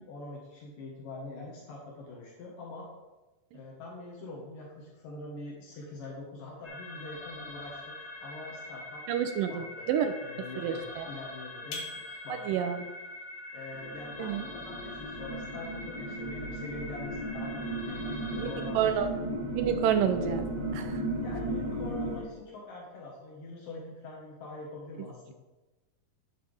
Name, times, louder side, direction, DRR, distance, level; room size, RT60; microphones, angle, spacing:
voice 1, 0.1-2.9 3.5-9.0 9.5-9.9 10.2-12.4 13.5-19.2 21.2-25.3, left 2 dB, 70° left, -3 dB, 3.1 m, -44 dB
sound 1, 6.6-18.7, left 2 dB, 10° left, 1.3 m, -44 dB
voice 2, 9.1-10.1 10.6-11.1 12.5-12.8 14.2-14.5 18.3-18.5 18.8-19.1 19.6-20.5 20.7-21.0, right 9 dB, 80° right, 8 dB, 2.1 m, -29 dB
sound 2, 11.7-12.8, left 3 dB, 90° left, 3.1 m, -42 dB
sound 3, 13.7-22.2, right 1 dB, 65° right, 0.9 m, -35 dB
11.5 x 7.6 x 3.5 m, 1.1 s
omnidirectional pair, 4.1 m